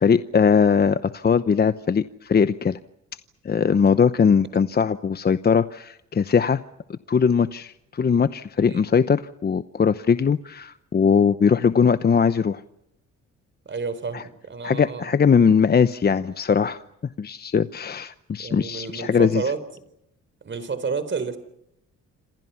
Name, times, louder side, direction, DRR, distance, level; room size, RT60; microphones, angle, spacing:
voice 1, 0.0-2.8 3.4-6.6 6.9-12.6 14.1-14.2 14.6-16.8 17.2-19.4, left 6 dB, 35° left, 12 dB, 0.8 m, -20 dB
voice 2, 13.7-15.2 18.4-19.6 20.4-21.4, right 5 dB, 40° right, 13 dB, 4.1 m, -30 dB
28.0 x 27.0 x 5.8 m, 0.79 s
cardioid pair, 90°, 30 cm